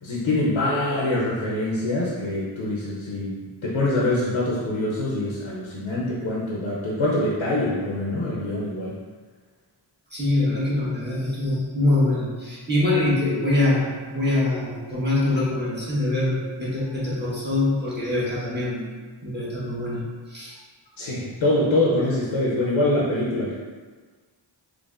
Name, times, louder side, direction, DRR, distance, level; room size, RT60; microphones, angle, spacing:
voice 1, 0.0-8.9 21.0-23.5, left 1 dB, 85° left, -6 dB, 0.7 m, -24 dB
voice 2, 10.1-18.9 19.2-20.0 20.3-20.6, left 2 dB, 20° right, -8 dB, 1.3 m, -24 dB
4.0 x 3.1 x 2.4 m, 1.4 s
wide cardioid pair, 70°, 46 cm